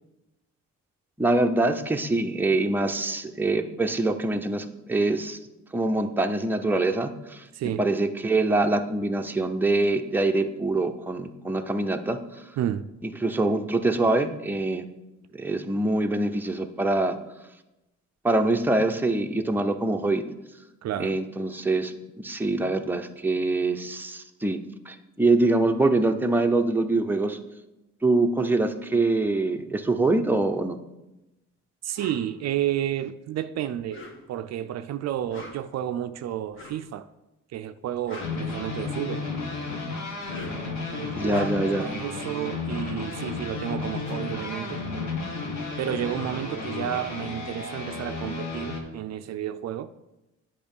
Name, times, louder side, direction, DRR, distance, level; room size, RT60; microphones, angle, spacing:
voice 1, 1.2-5.4 5.7-7.5 7.8-12.4 13.2-14.8 15.3-17.2 18.2-20.2 21.0-24.6 24.9-27.4 28.0-30.8 41.1-41.9, right 2 dB, 5° right, 0.7 m, -24 dB
voice 2, 7.5-7.8 12.6-12.9 20.8-21.1 31.8-34.0 34.3-37.1 37.5-39.3 40.9-41.5 41.7-44.8 45.8-49.9, right 11 dB, 60° right, 0.4 m, -31 dB
sound 1, 32.0-32.2 33.8-34.5 35.2-35.8 36.5-36.9 37.8-39.1 40.1-40.7 41.1-41.8 43.4-43.5 43.7-45.4, left 2 dB, 40° left, 1.7 m, -44 dB
sound 2, 38.2-48.8, left 3 dB, 70° left, 1.7 m, -33 dB
8.5 x 5.4 x 5.4 m
cardioid pair, 90°, 30 cm